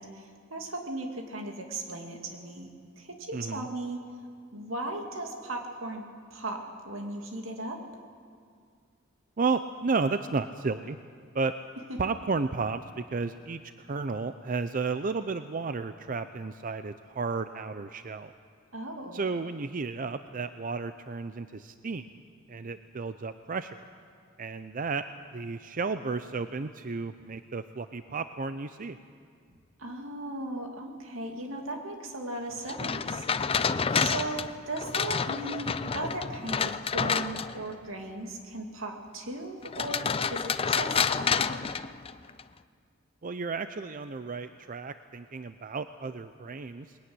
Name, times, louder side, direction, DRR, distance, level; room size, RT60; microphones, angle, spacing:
voice 1, 0.0-2.7 3.0-4.0 4.5-6.0 6.3-7.8 18.7-19.2 29.8-33.3 33.9-41.7, right 2 dB, 80° right, 3 dB, 2.6 m, -37 dB
voice 2, 3.3-3.7 9.4-11.0 11.3-11.5 12.0-18.3 19.1-22.1 22.5-23.9 24.4-25.0 25.3-29.0 43.2-47.0, right 4 dB, 40° right, 10 dB, 0.5 m, -33 dB
sound 1, 32.7-37.7 39.7-42.4, left 6 dB, 30° left, 0.4 m, -29 dB
21.0 x 15.0 x 9.6 m, 2.1 s
head